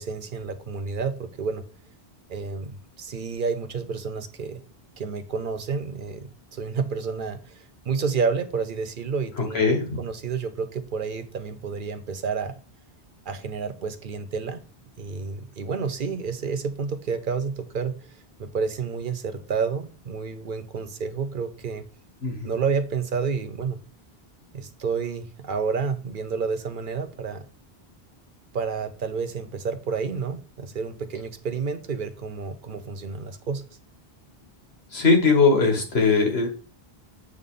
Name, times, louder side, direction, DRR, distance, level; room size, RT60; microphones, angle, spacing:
voice 1, 0.0-1.6 2.3-4.6 5.0-9.6 10.0-12.5 13.3-14.6 15.0-17.9 18.4-21.8 22.4-23.8 24.5-27.4 28.5-33.6, right 5 dB, 60° right, 10 dB, 0.8 m, -30 dB
voice 2, 9.4-10.0 22.2-22.5 34.9-36.5, left 4 dB, 85° left, 3 dB, 1.7 m, -20 dB
8.0 x 3.6 x 3.7 m, 0.38 s
omnidirectional pair, 1.0 m